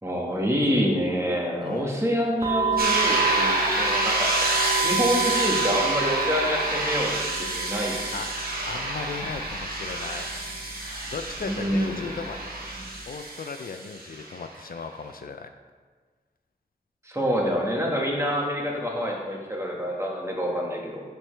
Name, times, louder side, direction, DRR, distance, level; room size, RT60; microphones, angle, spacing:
voice 1, 0.0-7.1 7.4-8.0 11.4-12.0 17.0-21.0, equal, 15° right, -2 dB, 1.6 m, -27 dB
sound 1, 2.4-13.0, right 6 dB, 40° right, 1.3 m, -31 dB
sound 2, 2.8-14.4, right 1 dB, 65° right, 1.3 m, -28 dB
voice 2, 8.1-10.3 11.0-12.5 13.1-15.5, left 5 dB, 60° left, 7 dB, 0.4 m, -36 dB
12.5 x 4.5 x 3.4 m, 1.5 s
wide cardioid pair, 85°, 17 cm